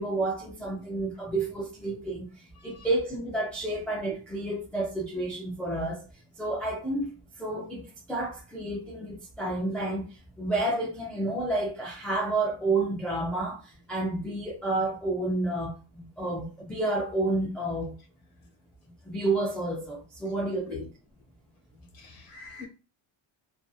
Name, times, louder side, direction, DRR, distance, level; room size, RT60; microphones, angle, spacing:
voice 1, 0.0-6.1 6.4-17.9 19.0-20.9, right 2 dB, 5° left, 0.3 m, -30 dB
voice 2, 22.0-22.7, left 4 dB, 50° left, 1.0 m, -41 dB
2.5 x 2.5 x 2.2 m
cardioid pair, 150°, 48 cm